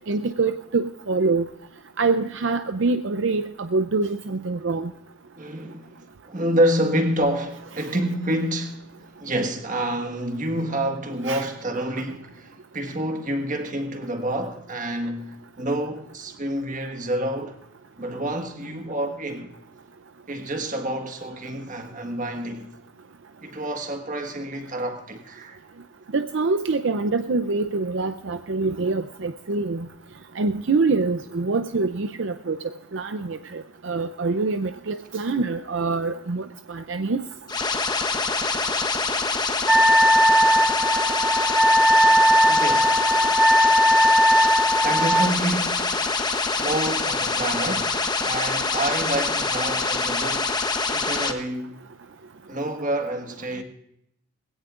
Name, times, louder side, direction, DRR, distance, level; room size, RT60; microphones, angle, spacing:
voice 1, 0.0-1.5 2.0-4.9 11.3-11.4 26.1-29.9 30.4-37.3, right 3 dB, 65° right, 0.6 m, -25 dB
voice 2, 5.4-17.6 18.0-19.5 20.3-22.7 23.4-25.6 42.5-43.0 44.8-46.1 46.6-50.6 50.9-51.8 52.5-53.6, right 1 dB, 40° right, 1.6 m, -28 dB
sound 1, 37.5-51.3, left 3 dB, 20° left, 0.9 m, -25 dB
Wind instrument woodwind instrument, 39.7-45.3, equal, 5° right, 0.5 m, -18 dB
21.0 x 17.0 x 2.5 m
head